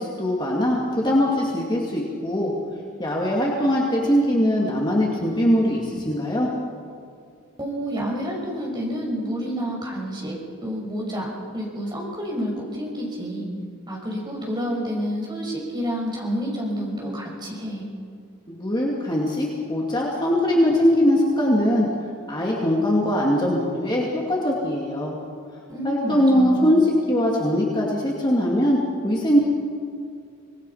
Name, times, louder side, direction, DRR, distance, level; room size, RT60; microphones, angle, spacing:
voice 1, 0.0-2.5 3.0-6.5 18.5-21.9 22.3-25.2 25.8-29.5, equal, 20° left, -3 dB, 2.4 m, -21 dB
voice 2, 7.6-10.4 10.6-13.5 13.9-17.9 25.7-26.7, equal, 20° right, -2 dB, 5.6 m, -29 dB
26.0 x 19.5 x 5.7 m, 2.3 s
head